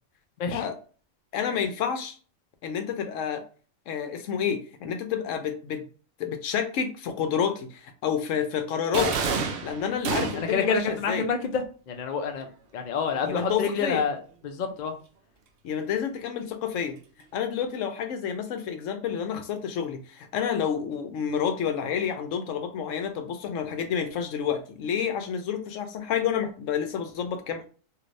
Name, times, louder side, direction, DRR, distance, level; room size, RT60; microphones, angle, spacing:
voice 1, 1.3-2.2 2.6-3.4 3.9-5.8 6.2-9.2 9.6-11.3 13.2-14.0 15.6-17.0 17.3-27.7, left 8 dB, 75° left, 7 dB, 0.9 m, -29 dB
sound 1, 8.9-10.7, right 5 dB, 65° right, 0.6 m, -28 dB
voice 2, 10.3-14.2 14.4-14.9, left 5 dB, 55° left, 5 dB, 0.5 m, -28 dB
3.2 x 2.6 x 2.6 m, 0.38 s
omnidirectional pair, 1.3 m